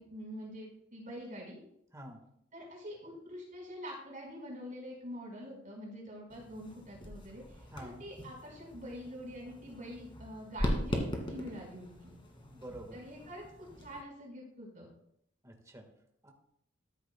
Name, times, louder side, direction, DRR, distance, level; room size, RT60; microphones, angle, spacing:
voice 1, 0.0-1.6 2.5-12.1 12.9-14.9, equal, 45° right, -2 dB, 4.7 m, -45 dB
voice 2, 1.9-2.3 7.7-8.1 12.5-13.0 15.4-15.9 16.2-16.3, right 1 dB, 15° right, 3 dB, 1.5 m, -48 dB
sound 1, 6.3-14.0, equal, 25° left, 2.1 m, -40 dB
13.5 x 10.5 x 2.3 m, 0.74 s
head